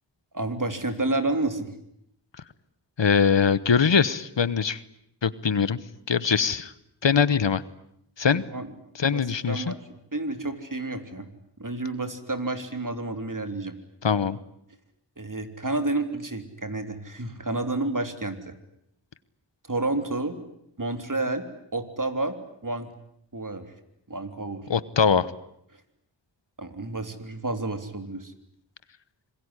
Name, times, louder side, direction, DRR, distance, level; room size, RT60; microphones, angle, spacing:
voice 1, 0.3-1.7 8.3-8.7 9.1-9.2 9.5-11.3 11.6-13.7 15.2-18.5 19.7-20.4 20.8-21.4 21.7-22.3 22.6-22.9 23.3-23.7 24.1-24.7 25.7-25.8 26.6-28.3, right 2 dB, 45° right, 8 dB, 3.4 m, -30 dB
voice 2, 3.0-4.8 5.2-5.8 6.1-6.7 7.0-7.6 8.2-8.4 8.9-9.7 14.0-14.4 24.7-25.3, left 6 dB, 75° left, 17 dB, 1.2 m, -22 dB
26.5 x 21.5 x 9.8 m, 0.75 s
wide cardioid pair, 45°, 44 cm